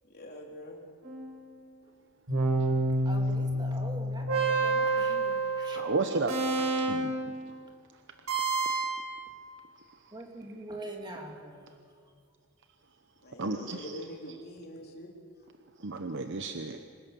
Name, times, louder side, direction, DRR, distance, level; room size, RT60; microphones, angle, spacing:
voice 1, 0.1-0.8 13.2-15.1, equal, 45° left, 0 dB, 3.6 m, -44 dB
sound 1, 1.0-1.6 2.3-7.3 8.3-9.1, right 2 dB, 85° right, 7.4 m, -29 dB
voice 2, 3.0-5.8 10.1-11.7, right 1 dB, 20° right, 2 dB, 2.7 m, -43 dB
voice 3, 5.7-6.4 6.9-7.1 13.4-14.0 15.8-16.8, right 3 dB, 55° right, 7 dB, 0.9 m, -32 dB
26.0 x 17.0 x 7.0 m, 2.2 s
head